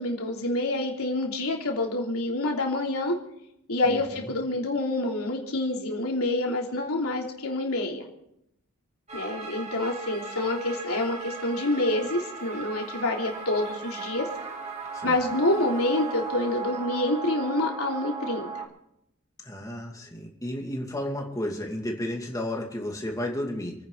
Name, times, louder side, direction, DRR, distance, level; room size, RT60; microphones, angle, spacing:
voice 1, 0.0-3.1 3.7-8.0 9.1-14.3 15.0-18.6, left 2 dB, 80° left, 0 dB, 3.3 m, -27 dB
voice 2, 3.8-4.3 14.9-15.2 19.4-23.8, left 1 dB, 15° left, 1 dB, 2.5 m, -33 dB
sound 1, 9.1-18.7, right 5 dB, 30° right, 2.9 m, -37 dB
29.0 x 9.9 x 4.0 m, 0.78 s
head